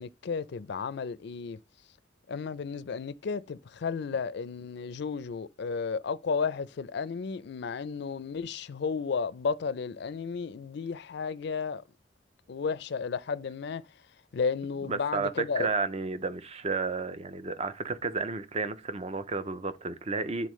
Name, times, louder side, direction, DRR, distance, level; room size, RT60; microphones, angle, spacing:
voice 1, 0.0-1.6 2.3-11.8 12.5-13.8 14.3-15.7, left 5 dB, 65° left, 0.4 m, -33 dB
voice 2, 14.9-15.3 15.6-20.5, right 4 dB, 35° right, 0.6 m, -32 dB
10.0 x 4.0 x 3.1 m
head